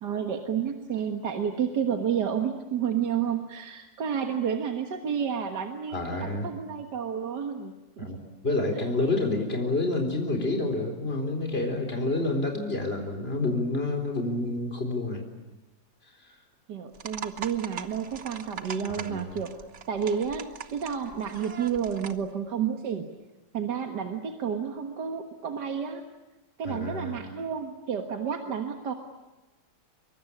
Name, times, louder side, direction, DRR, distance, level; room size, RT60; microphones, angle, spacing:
voice 1, 0.0-8.1 8.7-8.9 16.7-19.6 19.9-23.1 23.5-26.0 26.6-28.9, right 7 dB, 80° right, 5 dB, 2.2 m, -30 dB
voice 2, 5.9-6.5 8.0-8.2 8.4-15.2 16.2-16.3 18.9-19.4 26.6-27.2, left 2 dB, 35° left, 4 dB, 4.3 m, -28 dB
sound 1, 16.9-22.3, right 7 dB, 45° right, 1.4 m, -41 dB
24.5 x 23.5 x 9.9 m, 1.1 s
omnidirectional pair, 1.8 m